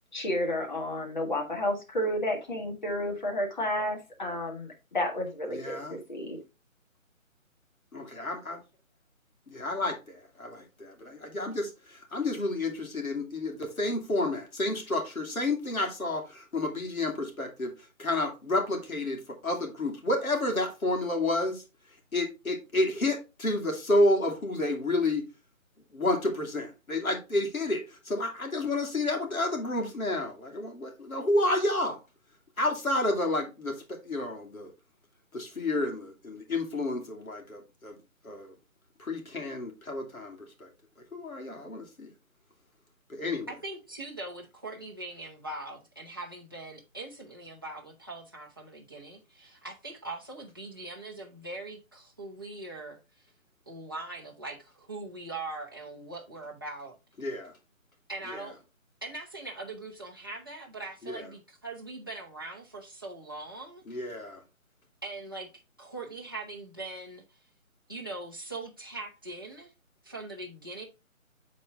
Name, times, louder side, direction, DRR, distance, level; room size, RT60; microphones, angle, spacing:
voice 1, 0.1-6.4, left 1 dB, 35° left, 1.6 m, -31 dB
voice 2, 5.5-6.0 7.9-8.6 9.5-17.7 18.0-21.6 22.1-25.3 25.9-32.0 32.6-34.7 35.3-37.9 38.2-38.5 39.0-40.7 41.1-42.1 43.1-43.5 57.2-57.5 61.0-61.2 63.9-64.4, left 2 dB, 85° left, 2.5 m, -30 dB
voice 3, 43.5-53.0 53.7-57.0 58.1-58.6 59.0-63.8 65.0-65.5 65.8-67.2 67.9-69.7 70.0-70.8, right 2 dB, 15° right, 0.8 m, -41 dB
7.6 x 4.2 x 3.6 m
hypercardioid pair, 170°, 41 cm